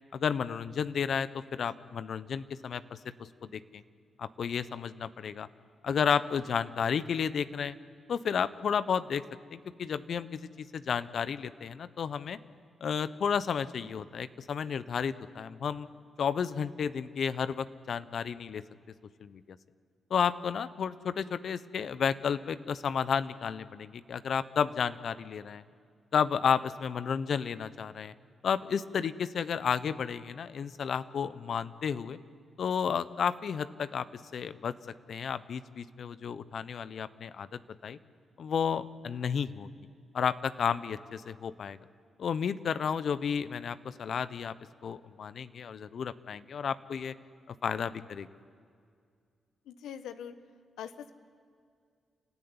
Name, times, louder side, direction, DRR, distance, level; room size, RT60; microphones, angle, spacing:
voice 1, 0.1-2.8 3.4-3.6 4.2-5.5 5.8-7.7 8.1-9.2 9.5-10.4 10.7-12.4 12.8-15.9 16.2-18.6 19.2-19.4 20.1-25.6 26.1-28.1 28.4-32.2 32.6-34.1 34.3-34.7 35.1-38.0 38.4-39.7 40.1-41.8 42.2-44.5 44.8-47.1 47.6-48.3, left 7 dB, 65° left, 15 dB, 0.9 m, -32 dB
voice 2, 49.7-50.3 50.8-51.1, left 9 dB, 80° left, 11 dB, 1.2 m, -42 dB
30.0 x 14.0 x 9.7 m, 2.2 s
supercardioid pair, 45°, 0 cm